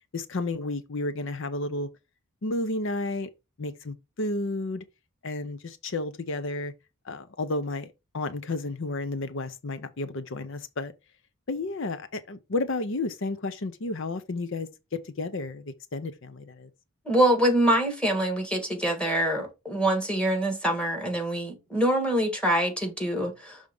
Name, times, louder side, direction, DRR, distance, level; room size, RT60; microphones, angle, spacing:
voice 1, 0.1-1.9 2.4-3.3 3.6-4.8 5.2-6.7 7.0-10.9 11.5-16.7, left 2 dB, 60° left, 0.6 m, -32 dB
voice 2, 17.1-23.6, right 1 dB, 5° left, 1.8 m, -25 dB
6.4 x 3.6 x 5.3 m
head